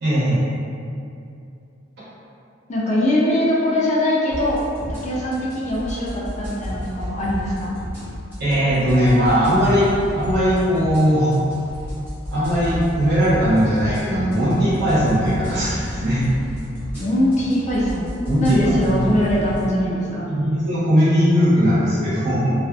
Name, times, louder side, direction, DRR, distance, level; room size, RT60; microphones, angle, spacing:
voice 1, 0.0-0.5 8.4-11.3 12.3-16.2 18.2-19.2 19.8-22.5, equal, 60° right, -11 dB, 1.0 m, -19 dB
voice 2, 2.7-4.6 4.9-7.7 17.0-18.1 18.4-20.3, left 1 dB, 40° left, -6 dB, 0.4 m, -21 dB
sound 1, 4.3-19.7, equal, 10° right, 0.9 m, -32 dB
2.5 x 2.3 x 2.3 m, 2.6 s
head